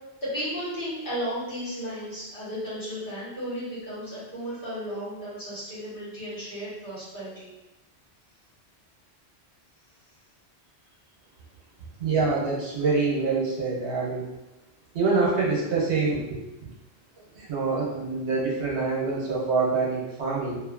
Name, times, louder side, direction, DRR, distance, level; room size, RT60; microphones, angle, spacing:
voice 1, 0.2-7.5, equal, 55° left, -10 dB, 1.6 m, -34 dB
voice 2, 12.0-14.3 14.9-16.4 17.3-20.6, right 4 dB, 85° right, -4 dB, 1.1 m, -25 dB
2.7 x 2.5 x 2.5 m, 0.99 s
omnidirectional pair, 1.1 m